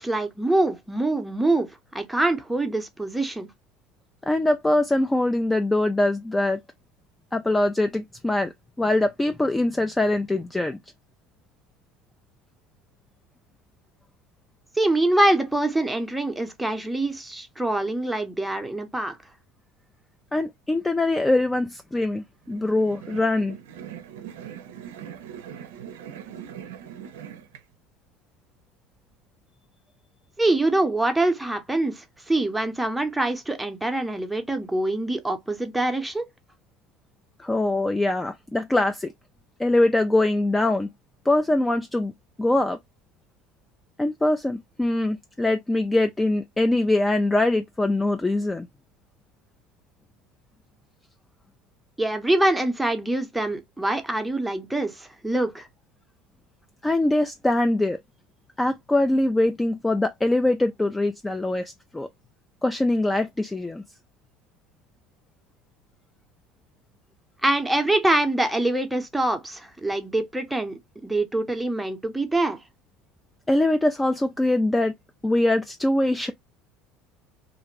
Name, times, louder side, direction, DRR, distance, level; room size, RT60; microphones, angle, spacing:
voice 1, 0.0-1.7 1.9-3.5 14.8-19.2 30.4-36.3 52.0-55.7 67.4-72.6, right 2 dB, 5° right, 0.7 m, -24 dB
voice 2, 4.3-6.6 7.3-8.5 8.8-10.8 20.3-23.6 37.4-39.1 39.6-40.9 41.3-42.1 42.4-42.8 44.0-48.7 56.8-58.0 58.6-62.1 62.6-63.8 73.5-74.9 75.2-76.3, left 2 dB, 10° left, 0.3 m, -23 dB
sound 1, 22.5-27.6, right 9 dB, 90° right, 0.5 m, -41 dB
2.5 x 2.5 x 3.0 m
supercardioid pair, 100°, 0 cm